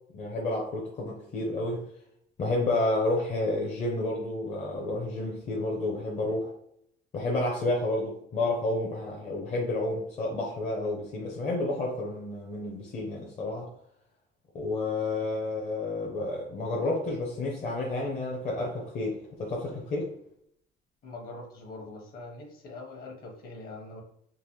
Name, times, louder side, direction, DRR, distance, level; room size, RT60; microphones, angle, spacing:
voice 1, 0.1-1.9 2.4-6.5 7.1-13.7 14.5-20.1, left 2 dB, 35° left, -2 dB, 0.7 m, -30 dB
voice 2, 21.0-24.0, left 2 dB, 50° left, 1 dB, 1.1 m, -43 dB
3.8 x 2.5 x 3.1 m, 0.70 s
cardioid pair, 150°, 20 cm